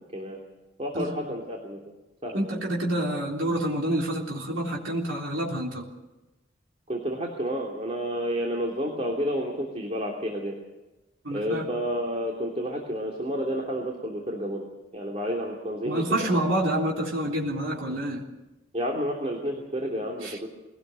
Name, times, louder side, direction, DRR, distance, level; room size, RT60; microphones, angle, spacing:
voice 1, 0.8-1.8 2.2-2.7 6.9-10.5 11.3-14.6 14.9-16.5 17.9-18.0 18.7-20.5, equal, 30° right, 0 dB, 3.1 m, -30 dB
voice 2, 2.3-5.9 11.2-11.6 15.9-18.3 20.2-20.4, right 1 dB, 90° right, -2 dB, 3.7 m, -28 dB
23.0 x 18.0 x 7.7 m, 1.0 s
head